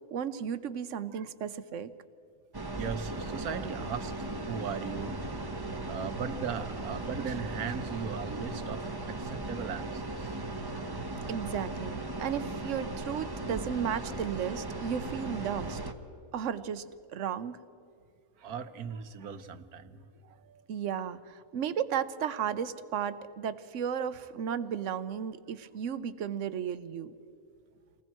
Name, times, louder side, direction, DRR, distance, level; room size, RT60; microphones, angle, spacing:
voice 1, 0.0-1.9 11.3-15.8 16.3-17.6 20.7-27.1, right 8 dB, 60° right, 13 dB, 1.1 m, -34 dB
sound 1, 2.5-15.9, right 2 dB, 20° right, 1.0 m, -37 dB
voice 2, 2.7-5.1 5.9-10.5 18.4-20.6, right 6 dB, 75° right, 10 dB, 1.4 m, -38 dB
28.5 x 20.0 x 4.5 m, 2.5 s
omnidirectional pair, 1.6 m